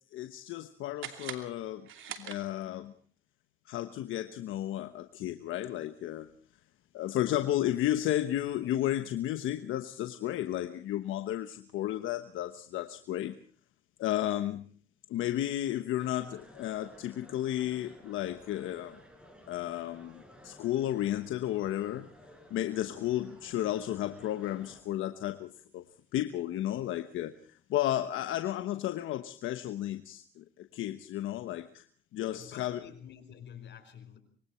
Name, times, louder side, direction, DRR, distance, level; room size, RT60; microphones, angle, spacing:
voice 1, 0.1-1.9 2.2-2.9 3.7-6.3 6.9-13.4 14.0-14.6 15.1-19.0 19.5-22.1 22.5-25.8 26.1-31.9 32.1-32.8, left 13 dB, 85° left, 9 dB, 1.2 m, -33 dB
sound 1, 1.0-2.9, right 10 dB, 80° right, 2.8 m, -44 dB
sound 2, 16.0-24.8, equal, 5° right, 7.4 m, -55 dB
voice 2, 32.2-34.2, left 8 dB, 65° left, 8 dB, 4.9 m, -49 dB
25.5 x 23.0 x 4.5 m, 0.44 s
cardioid pair, 90°, 20 cm